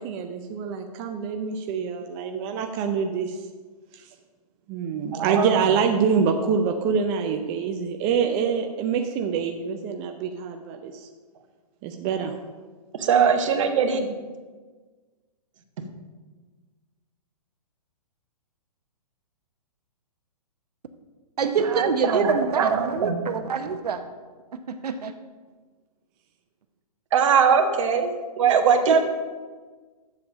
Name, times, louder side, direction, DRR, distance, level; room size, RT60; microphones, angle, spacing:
voice 1, 0.0-3.4 3.9-4.0 4.7-11.1 11.8-12.3, right 6 dB, 25° right, 5 dB, 0.6 m, -25 dB
voice 2, 5.1-5.6 12.9-14.1 21.7-23.2 27.1-28.1 28.4-29.0, right 6 dB, 55° right, 5 dB, 1.3 m, -21 dB
voice 3, 21.4-24.0 24.5-25.1 28.9-29.0, right 5 dB, 80° right, 8 dB, 0.9 m, -26 dB
7.7 x 7.2 x 6.2 m, 1.4 s
hypercardioid pair, 145°, 20 cm